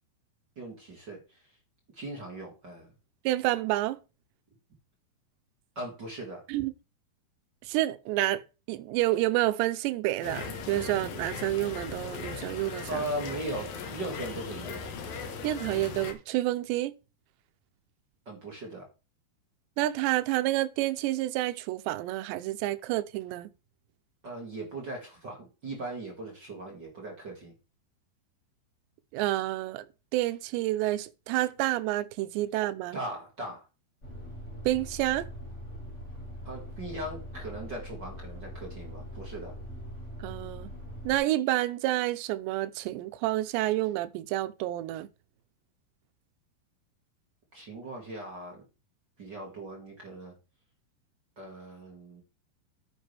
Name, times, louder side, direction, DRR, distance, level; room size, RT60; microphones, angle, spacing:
voice 1, 0.5-1.6 1.9-2.9 5.7-6.4 12.9-14.8 18.2-18.8 24.2-27.5 32.9-33.7 36.4-39.6 47.5-48.6 49.2-50.3 51.3-52.2, right 1 dB, 40° right, 1.5 m, -39 dB
voice 2, 3.3-4.0 6.5-6.7 7.7-8.4 8.7-12.9 15.4-16.9 19.8-23.5 29.1-29.9 30.1-33.0 34.7-35.3 40.2-40.7 41.1-45.1, right 16 dB, 85° right, 2.9 m, -29 dB
sound 1, 10.2-16.1, left 5 dB, 65° left, 2.8 m, -38 dB
sound 2, 34.0-41.2, equal, 45° left, 0.9 m, -42 dB
9.6 x 8.1 x 3.4 m
omnidirectional pair, 5.0 m